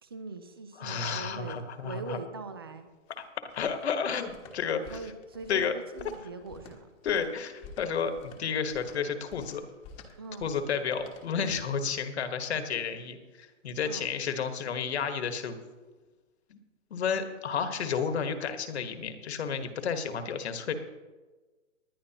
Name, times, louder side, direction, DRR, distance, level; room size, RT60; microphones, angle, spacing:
voice 1, 0.0-2.9 4.9-6.9 10.2-10.5 13.9-14.1, right 3 dB, 20° right, 10 dB, 0.4 m, -42 dB
voice 2, 0.8-2.2 3.5-5.1 5.5-5.7 7.0-9.6 10.4-15.6 16.5-16.6 16.9-20.7, left 6 dB, 55° left, 7 dB, 1.5 m, -31 dB
sound 1, 2.9-11.8, left 4 dB, 15° left, 1.3 m, -52 dB
19.5 x 11.0 x 2.9 m, 1.3 s
hypercardioid pair, 160°, 38 cm